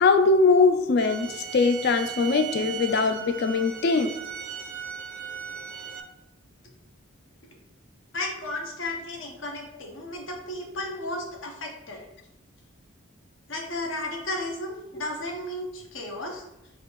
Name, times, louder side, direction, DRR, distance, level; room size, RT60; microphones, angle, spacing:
voice 1, 0.0-4.1 11.2-11.3, left 4 dB, 50° left, 8 dB, 0.4 m, -21 dB
sound 1, 1.0-6.0, right 7 dB, 40° right, 0.4 m, -37 dB
voice 2, 8.1-12.0 13.5-16.4, left 1 dB, 65° left, 1 dB, 1.0 m, -34 dB
4.2 x 2.6 x 4.5 m, 0.90 s
head